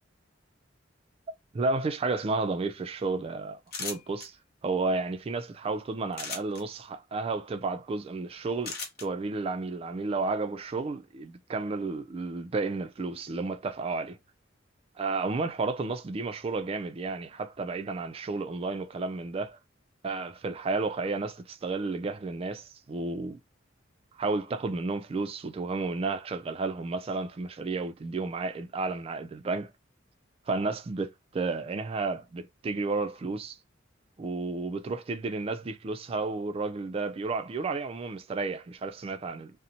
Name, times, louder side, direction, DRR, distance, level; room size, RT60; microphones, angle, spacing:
voice 1, 1.5-4.4 4.6-14.2 15.0-19.6 20.0-23.4 24.2-29.7 30.5-33.6 34.2-39.5, right 3 dB, 30° right, 0.3 m, -32 dB
sound 1, 3.7-4.3 6.1-6.6 8.6-9.1, left 4 dB, 55° left, 0.8 m, -36 dB
2.6 x 2.1 x 2.8 m
head